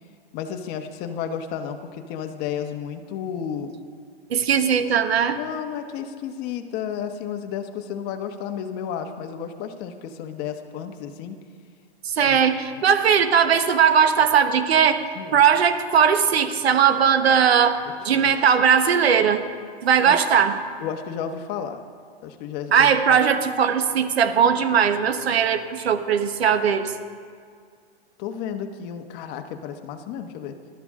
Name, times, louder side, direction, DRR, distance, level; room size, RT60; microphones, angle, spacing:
voice 1, 0.3-3.7 5.4-11.4 12.2-12.4 12.7-12.8 15.1-15.4 18.1-18.3 20.0-20.2 20.8-21.8 22.2-23.2 28.2-30.5, left 8 dB, 30° left, 6 dB, 1.2 m, -32 dB
voice 2, 4.3-5.4 12.0-15.0 15.3-17.8 18.0-19.4 19.8-20.5 22.7-26.9, right 7 dB, 80° right, 9 dB, 1.3 m, -19 dB
21.0 x 12.5 x 3.7 m, 2.1 s
hypercardioid pair, 140°, 31 cm